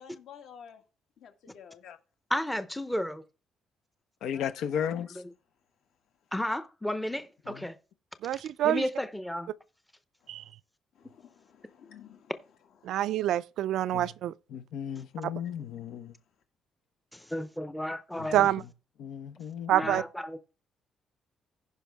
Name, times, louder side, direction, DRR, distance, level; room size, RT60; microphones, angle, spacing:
voice 1, 0.0-0.8 1.2-1.8 4.3-5.0 10.2-10.5 11.0-12.3 12.8-13.1 15.4-15.5, left 8 dB, 70° left, 1.9 m, -52 dB
voice 2, 2.3-3.2 5.2-5.3 6.3-7.7 8.3-9.5 17.1-18.5 19.7-20.4, left 1 dB, 5° left, 0.6 m, -33 dB
voice 3, 4.2-5.1 7.5-7.6 13.9-14.1 14.5-16.1 19.0-19.7, left 8 dB, 90° left, 0.8 m, -35 dB
voice 4, 8.2-8.8 10.3-10.4 12.8-14.3 15.2-15.3 18.3-18.6 19.7-20.0, right 13 dB, 75° right, 0.4 m, -26 dB
15.5 x 5.4 x 3.4 m
cardioid pair, 165°, 0 cm